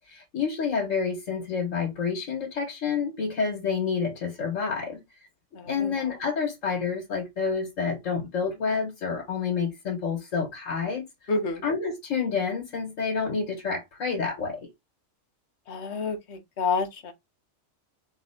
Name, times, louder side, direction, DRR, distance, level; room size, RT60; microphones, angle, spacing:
voice 1, 0.1-5.0 5.6-11.0 11.6-14.6, left 5 dB, 85° left, 1.7 m, -28 dB
voice 2, 5.5-6.0 11.3-11.6 15.7-17.1, left 4 dB, 60° left, 1.2 m, -29 dB
3.6 x 3.6 x 3.5 m
omnidirectional pair, 1.3 m